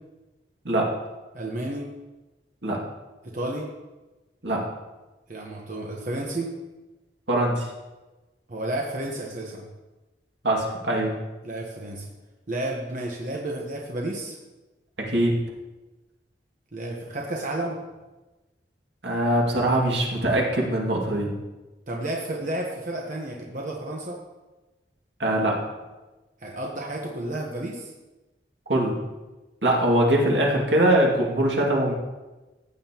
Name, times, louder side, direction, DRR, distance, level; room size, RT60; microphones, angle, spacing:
voice 1, 1.3-1.9 3.2-3.7 5.3-6.5 8.5-9.6 11.4-12.1 12.5-14.4 16.7-17.8 21.9-24.2 26.4-27.9, right 1 dB, 45° right, -1 dB, 1.1 m, -31 dB
voice 2, 7.3-7.7 10.4-11.1 15.1-15.3 19.0-21.3 25.2-25.6 28.7-29.0 29.6-31.9, right 1 dB, 80° right, -2 dB, 2.3 m, -22 dB
15.0 x 8.9 x 3.0 m, 1.1 s
head